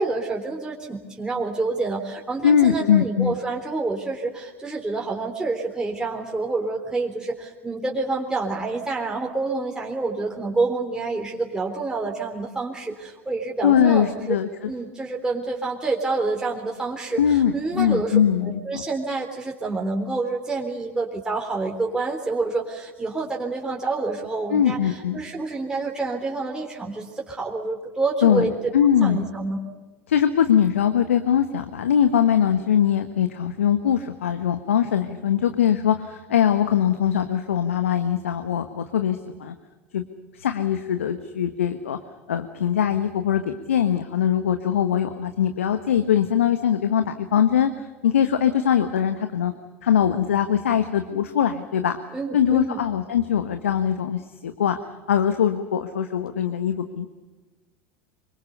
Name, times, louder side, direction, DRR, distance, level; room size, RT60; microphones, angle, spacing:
voice 1, 0.0-14.4 14.7-28.7 29.0-29.6 52.1-52.8, right 3 dB, 10° right, -1 dB, 3.7 m, -28 dB
voice 2, 2.4-3.3 13.6-14.5 17.2-18.8 24.5-25.2 28.2-29.3 30.1-39.5 39.9-40.0 40.3-42.0 42.3-49.5 49.8-52.0 52.3-54.8 55.1-57.1, left 9 dB, 75° left, 8 dB, 1.3 m, -21 dB
25.5 x 24.0 x 6.9 m, 1.3 s
figure-of-eight pair, 80°, 7 cm